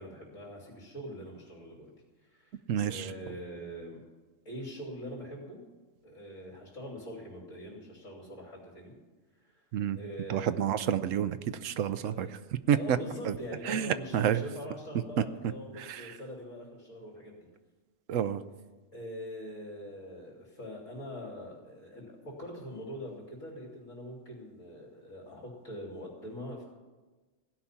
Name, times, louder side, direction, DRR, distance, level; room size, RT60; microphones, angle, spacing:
voice 1, 0.0-1.9 2.2-4.0 4.4-5.6 6.0-8.9 9.4-9.6 9.9-10.6 12.0-12.3 12.7-17.4 18.9-26.6, equal, 85° left, -3 dB, 3.2 m, -43 dB
voice 2, 2.7-3.0 9.7-10.0 10.3-12.3 12.7-12.8 13.7-14.4 18.1-18.4, right 9 dB, 80° right, 13 dB, 1.0 m, -29 dB
16.0 x 5.8 x 9.9 m, 1.3 s
omnidirectional pair, 1.3 m